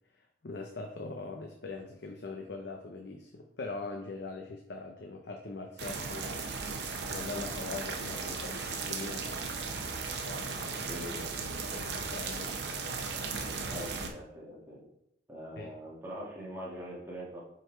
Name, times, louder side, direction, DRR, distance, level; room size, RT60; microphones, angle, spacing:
voice 1, 0.1-9.3 10.2-11.1 11.6-12.8 15.6-15.7, left 3 dB, 60° left, 3 dB, 0.6 m, -42 dB
sound 1, 5.8-14.1, right 4 dB, 60° right, 0.7 m, -36 dB
voice 2, 10.8-11.3 13.7-14.8 15.3-17.4, equal, 10° right, -5 dB, 1.5 m, -43 dB
5.3 x 4.0 x 4.4 m, 0.75 s
head